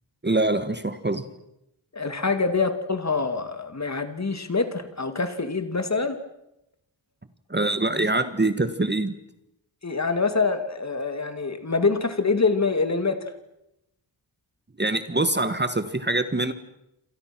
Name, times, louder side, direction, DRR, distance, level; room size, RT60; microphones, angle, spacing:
voice 1, 0.2-1.3 7.5-9.2 14.8-16.5, right 2 dB, 20° right, 11 dB, 1.5 m, -24 dB
voice 2, 1.9-6.2 9.8-13.2, left 4 dB, 35° left, 9 dB, 2.5 m, -25 dB
28.5 x 27.0 x 6.1 m, 0.85 s
wide cardioid pair, 110°, 47 cm